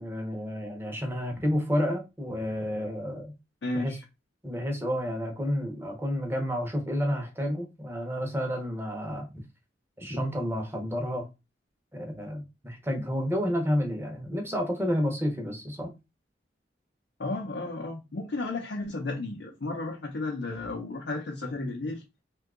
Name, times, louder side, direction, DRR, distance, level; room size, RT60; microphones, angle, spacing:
voice 1, 0.0-3.3 3.7-4.0 4.4-9.3 10.0-11.2 11.9-15.9, equal, 15° right, 0.7 m, -30 dB
voice 2, 3.6-4.0 17.2-22.0, left 2 dB, 70° left, 0.6 m, -33 dB
2.7 x 2.3 x 3.5 m
head